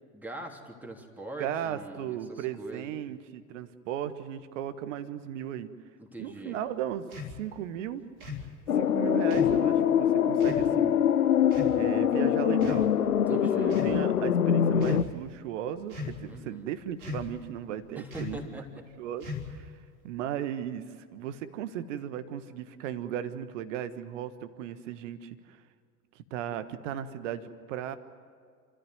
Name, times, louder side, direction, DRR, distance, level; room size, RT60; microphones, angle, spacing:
voice 1, 0.1-2.9 6.0-6.6 13.1-13.7 16.3-16.7 17.9-18.8, right 1 dB, 5° right, 0 dB, 3.2 m, -43 dB
voice 2, 1.4-5.7 6.2-7.1 7.4-8.0 8.7-11.0 11.8-12.9 13.3-18.6 19.0-19.7 20.0-25.6 26.1-28.0, right 10 dB, 60° right, 12 dB, 1.5 m, -36 dB
sound 1, 7.1-7.4 8.2-8.5 9.3-9.6 10.4-10.7 11.5-11.8 12.6-13.1 13.7-14.0 14.7-15.1 15.9-16.3 17.0-17.4 18.1-18.4 19.2-19.7, left 4 dB, 75° right, 3.6 m, -38 dB
sound 2, 8.7-15.0, left 9 dB, 80° left, 0.8 m, -24 dB
28.5 x 14.0 x 9.5 m, 2.1 s
figure-of-eight pair, 75°, 43 cm